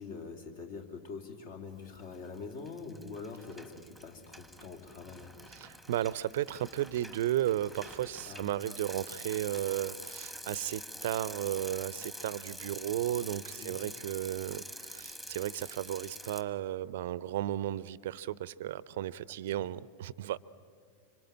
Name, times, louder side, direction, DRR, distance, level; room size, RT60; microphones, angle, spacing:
voice 1, 0.0-5.5 8.3-8.5 13.6-13.8 19.4-19.7, left 4 dB, 50° left, 3 dB, 3.1 m, -44 dB
Bicycle, 2.0-2.4 2.7-16.4, equal, 5° left, 1.5 m, -46 dB
voice 2, 5.5-20.4, right 12 dB, 55° right, 20 dB, 0.6 m, -34 dB
25.5 x 25.5 x 8.8 m, 2.2 s
figure-of-eight pair, 95°, 0 cm